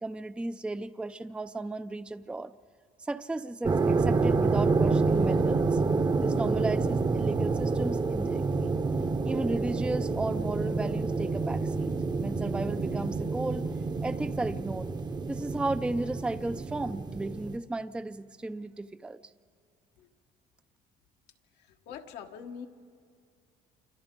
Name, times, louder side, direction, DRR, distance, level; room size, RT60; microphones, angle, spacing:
voice 1, 0.0-2.5 3.1-5.8 6.1-8.7 9.2-13.7 14.0-14.9 15.3-19.2, right 2 dB, 5° right, 12 dB, 0.4 m, -34 dB
sound 1, 3.6-17.6, right 4 dB, 25° right, 0.8 m, -28 dB
voice 2, 21.6-22.7, left 7 dB, 85° left, 4 dB, 1.4 m, -43 dB
28.0 x 25.5 x 3.8 m, 2.5 s
cardioid pair, 110°, 17 cm